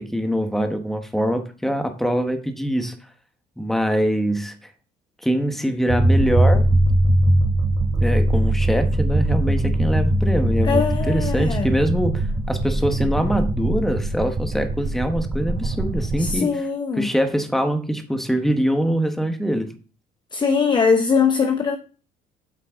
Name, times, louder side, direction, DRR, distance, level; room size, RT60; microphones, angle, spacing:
voice 1, 0.0-2.9 3.6-4.5 5.2-6.6 8.0-16.5 17.0-19.7, equal, ahead, 1.1 m, -23 dB
sound 1, 5.9-16.3, right 1 dB, 25° right, 1.0 m, -21 dB
voice 2, 10.6-11.8 16.2-17.1 20.3-21.8, left 5 dB, 25° left, 0.7 m, -21 dB
8.1 x 5.5 x 3.6 m
cardioid pair, 110°, 17 cm